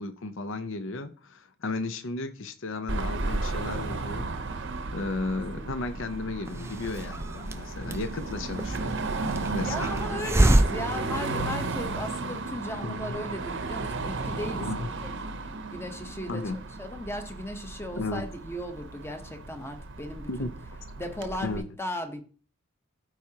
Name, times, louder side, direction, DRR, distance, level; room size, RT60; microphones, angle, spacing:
voice 1, 0.0-4.7 4.9-9.0 9.5-9.9 12.8-13.1 14.6-14.9 16.3-16.6 17.9-18.3 20.3-20.5 21.4-21.6, left 3 dB, 65° left, 0.7 m, -34 dB
Car passing by / Traffic noise roadway noise / Engine, 2.9-21.6, right 3 dB, 60° right, 0.8 m, -34 dB
voice 2, 5.5-6.0 9.6-15.1 15.7-20.5 21.0-22.2, left 1 dB, 10° left, 0.9 m, -36 dB
Hiss, 6.5-11.9, right 1 dB, 15° right, 0.5 m, -28 dB
13.5 x 4.8 x 2.8 m
head